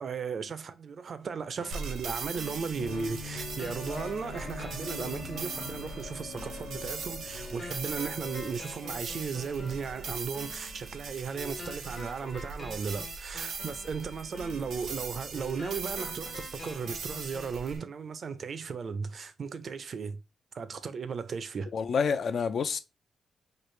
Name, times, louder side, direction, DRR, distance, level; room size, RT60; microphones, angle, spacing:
voice 1, 0.0-20.2 20.5-21.7, right 5 dB, 50° right, 0.4 m, -36 dB
sound 1, 1.6-17.6, left 3 dB, 35° left, 0.7 m, -47 dB
sound 2, 1.7-17.8, right 4 dB, 90° right, 0.7 m, -40 dB
sound 3, 2.8-10.1, left 4 dB, 80° left, 0.7 m, -44 dB
voice 2, 21.7-22.8, left 6 dB, 60° left, 0.3 m, -28 dB
3.1 x 2.4 x 3.1 m
cardioid pair, 120°, 0 cm